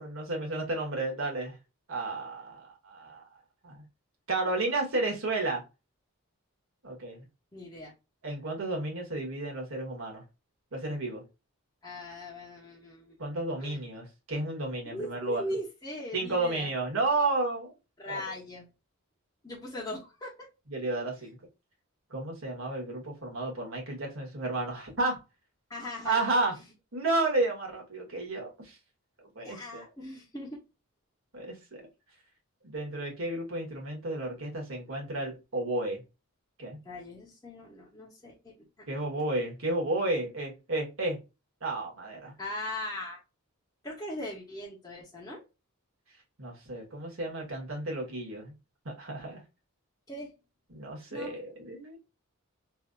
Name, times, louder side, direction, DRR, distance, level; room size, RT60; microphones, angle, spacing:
voice 1, 0.0-1.6 1.9-3.2 3.6-3.8 4.3-5.6 6.8-7.2 8.2-10.2 10.7-11.2 13.2-15.4 16.1-17.7 18.1-18.2 20.7-21.4 22.1-25.2 26.0-26.5 26.9-28.8 29.3-29.8 31.3-31.8 32.6-36.0 36.6-36.8 38.9-41.2 41.6-42.3 46.4-48.5 48.8-49.4 50.7-52.0, right 2 dB, 60° right, 1.4 m, -32 dB
voice 2, 7.5-7.9 11.8-13.2 13.6-13.8 14.8-16.7 18.0-18.7 19.4-20.3 25.7-26.3 26.5-26.6 29.4-30.6 36.8-38.9 42.4-43.2 43.8-45.4 50.1-50.3 51.1-51.3, left 1 dB, 15° left, 0.8 m, -39 dB
3.3 x 2.5 x 2.3 m
head